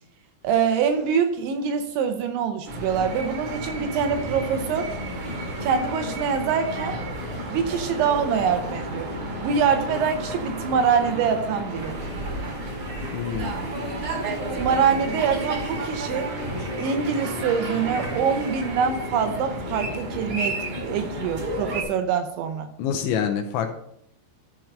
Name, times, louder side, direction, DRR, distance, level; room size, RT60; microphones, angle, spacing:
voice 1, 0.4-4.9 5.6-7.0 7.5-9.1 9.4-12.0 14.2-16.3 16.8-22.7, right 6 dB, 80° right, 6 dB, 2.9 m, -24 dB
sound 1, 2.7-21.8, right 1 dB, 50° right, 2.5 m, -32 dB
sound 2, 11.7-18.8, right 1 dB, 30° right, 3.2 m, -39 dB
voice 2, 13.1-13.6 22.8-23.7, left 8 dB, 85° left, 6 dB, 2.8 m, -26 dB
13.5 x 4.5 x 5.2 m, 0.70 s
omnidirectional pair, 5.8 m